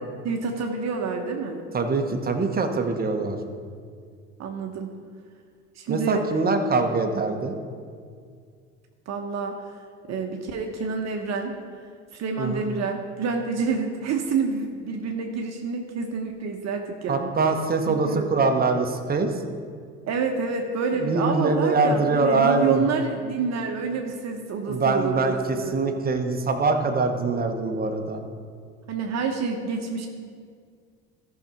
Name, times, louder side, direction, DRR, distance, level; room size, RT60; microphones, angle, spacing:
voice 1, 0.2-1.6 4.4-4.9 5.8-6.3 9.1-9.6 10.1-11.5 12.1-17.3 17.9-18.3 20.0-25.8 28.9-30.1, right 4 dB, 50° right, 3 dB, 1.1 m, -28 dB
voice 2, 1.7-3.4 5.9-7.5 12.4-12.6 17.1-19.3 21.0-22.8 24.7-28.2, right 3 dB, 25° right, 4 dB, 1.2 m, -23 dB
13.5 x 5.9 x 5.4 m, 2.1 s
hypercardioid pair, 75°, 34 cm